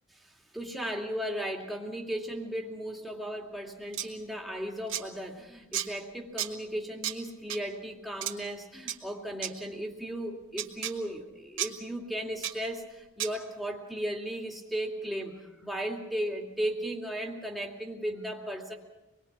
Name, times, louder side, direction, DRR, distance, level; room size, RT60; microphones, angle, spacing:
voice 1, 0.5-18.7, right 1 dB, ahead, -1 dB, 2.6 m, -36 dB
sound 1, 3.9-4.1 4.9-5.0 5.7-5.9 6.4-6.5 7.0-7.1 7.5-7.6 8.2-8.3 8.9-9.0 9.4-9.5 10.6-10.9 11.6-11.7 12.4-12.5 13.2-13.3, right 11 dB, 70° right, 2.5 m, -32 dB
26.5 x 21.5 x 6.1 m, 1.0 s
head